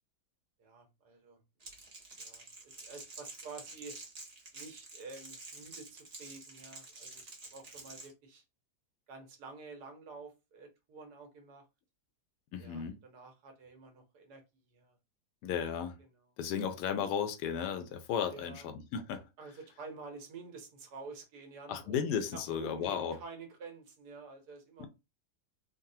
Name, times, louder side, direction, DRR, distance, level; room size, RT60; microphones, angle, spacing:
voice 1, 0.6-1.4 2.2-4.0 4.5-8.4 9.1-11.6 12.6-14.4 14.7-15.0 16.0-16.1 18.3-18.7 19.4-24.9, right 4 dB, 80° right, 1.4 m, -49 dB
Crackle, 1.6-8.1, right 3 dB, 40° right, 0.5 m, -49 dB
voice 2, 12.5-13.0 15.4-16.0 16.4-19.2 21.7-23.2 24.8-24.9, left 8 dB, 80° left, 1.2 m, -34 dB
3.9 x 2.0 x 2.7 m
omnidirectional pair, 1.7 m